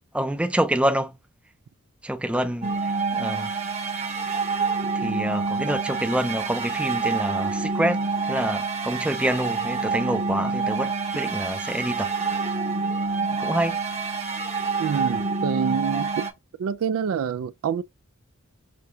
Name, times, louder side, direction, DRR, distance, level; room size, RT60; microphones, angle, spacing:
voice 1, 0.1-1.2 2.0-3.5 4.9-8.0 8.3-12.1 13.2-13.8, right 1 dB, 5° right, 0.4 m, -27 dB
sound 1, 2.6-16.3, right 4 dB, 30° right, 0.8 m, -27 dB
voice 2, 14.8-16.2 16.6-17.8, right 7 dB, 75° right, 0.3 m, -26 dB
6.2 x 2.3 x 2.7 m
head